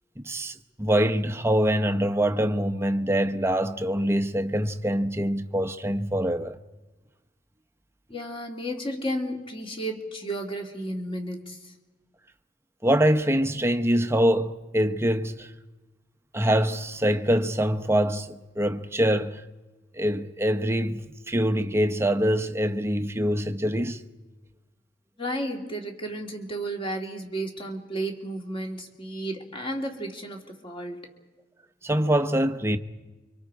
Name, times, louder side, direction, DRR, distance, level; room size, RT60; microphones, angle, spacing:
voice 1, 0.2-6.6 12.8-15.5 16.3-19.4 19.9-24.0 31.8-32.8, equal, 15° right, 0.9 m, -24 dB
voice 2, 8.1-11.6 25.2-31.1, right 1 dB, 30° left, 2.8 m, -33 dB
29.5 x 25.0 x 4.9 m
head